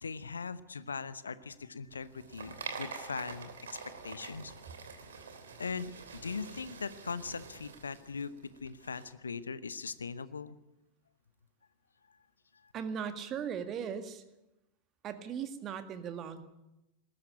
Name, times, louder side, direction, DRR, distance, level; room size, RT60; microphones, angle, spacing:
voice 1, 0.0-3.8 4.0-4.5 5.6-10.6, left 5 dB, 75° left, 16 dB, 0.9 m, -40 dB
sound 1, 1.9-9.0, right 5 dB, 65° right, 3.1 m, -46 dB
voice 2, 12.7-14.2 15.0-16.5, right 7 dB, 30° right, 9 dB, 1.9 m, -38 dB
20.0 x 13.0 x 10.0 m, 0.94 s
figure-of-eight pair, 90°, 0 cm